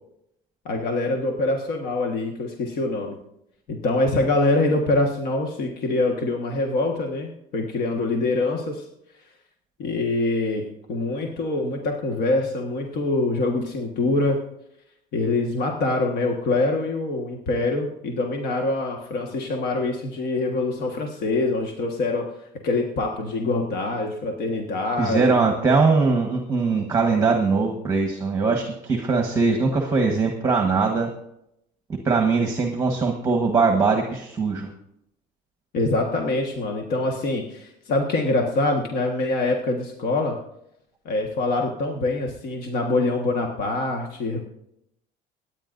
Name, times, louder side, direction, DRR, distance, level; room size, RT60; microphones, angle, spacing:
voice 1, 0.6-3.2 3.7-8.9 9.8-14.4 15.1-22.3 22.6-25.4 35.7-40.4 41.0-44.4, left 2 dB, 60° left, 2 dB, 1.6 m, -24 dB
voice 2, 25.0-31.1 31.9-34.7, right 4 dB, 15° right, 3 dB, 1.3 m, -21 dB
25.0 x 9.6 x 2.6 m, 0.78 s
cardioid pair, 150°, 17 cm